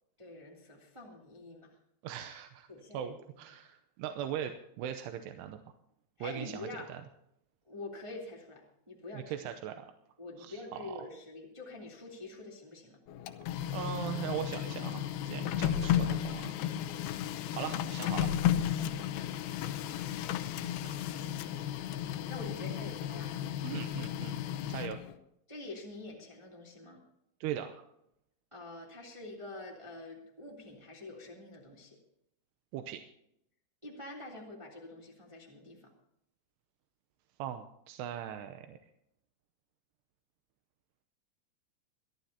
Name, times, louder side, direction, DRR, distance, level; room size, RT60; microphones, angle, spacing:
voice 1, 0.2-1.8 2.7-3.1 6.2-6.9 7.6-9.3 10.2-13.0 17.5-17.7 18.8-19.3 20.9-21.3 22.3-23.4 25.5-27.0 28.5-32.0 33.8-35.9, left 2 dB, 10° right, -2 dB, 2.1 m, -46 dB
voice 2, 2.0-2.7 2.9-5.6 6.2-7.0 9.1-9.9 10.4-11.0 13.7-16.6 17.5-18.3 20.8-21.1 21.6-21.7 23.6-24.3 24.7-25.0 27.4-27.8 32.7-33.0 37.4-38.8, right 10 dB, 80° right, 7 dB, 2.8 m, -40 dB
Printer, 13.1-25.1, left 10 dB, 75° left, 2.5 m, -34 dB
24.0 x 12.5 x 2.9 m, 0.77 s
omnidirectional pair, 5.2 m